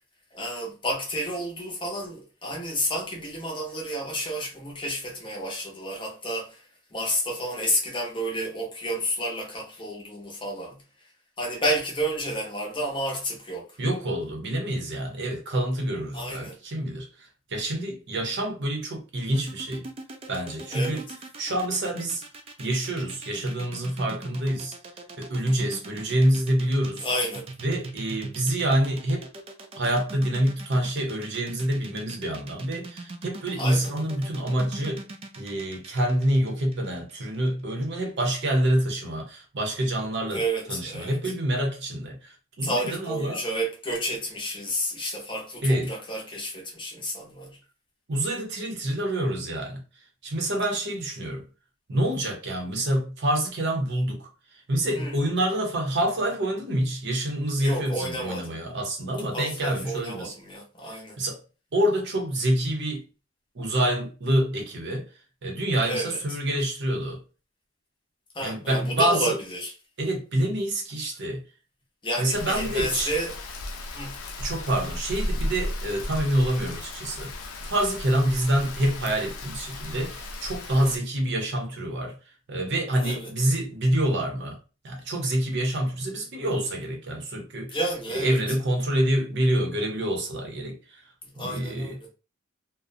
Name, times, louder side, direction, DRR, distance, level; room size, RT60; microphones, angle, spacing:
voice 1, 0.3-10.8 11.4-13.8 16.1-16.6 20.7-21.0 27.0-27.5 33.6-33.9 40.3-41.2 42.6-47.6 54.9-55.2 57.6-58.6 59.3-61.2 65.8-66.2 68.3-69.7 72.0-73.4 73.9-74.2 83.0-83.3 87.7-88.4 91.2-92.1, equal, 25° left, 0.7 m, -31 dB
voice 2, 13.8-19.9 20.3-21.0 21.4-22.2 22.6-24.7 25.2-27.1 27.6-29.3 29.7-35.0 35.4-40.4 40.7-43.4 45.6-45.9 48.1-49.8 50.2-51.4 51.9-60.3 60.9-61.4 61.7-63.0 63.5-65.1 65.4-67.2 68.4-69.4 70.0-71.4 72.2-73.1 74.4-82.2 82.5-84.6 84.8-87.8 88.1-91.0 91.4-91.9, right 1 dB, 55° right, 0.7 m, -27 dB
sound 1, 19.3-37.5, right 2 dB, 25° right, 0.3 m, -41 dB
Rain, 72.3-81.0, left 1 dB, 90° left, 0.5 m, -35 dB
2.4 x 2.0 x 2.5 m
head